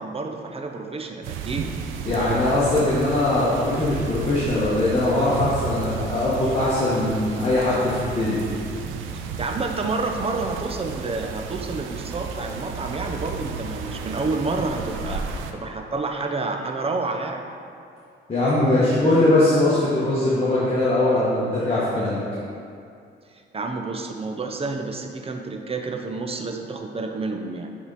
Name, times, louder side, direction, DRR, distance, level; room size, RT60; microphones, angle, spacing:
voice 1, 0.0-1.8 9.4-17.5 23.5-27.7, right 3 dB, 30° right, 3 dB, 0.7 m, -29 dB
sound 1, 1.2-15.5, right 6 dB, 90° right, 0.5 m, -33 dB
voice 2, 2.1-8.4 18.3-22.2, left 2 dB, 30° left, -9 dB, 1.4 m, -21 dB
8.7 x 3.8 x 4.1 m, 2.5 s
cardioid pair, 90°, 20 cm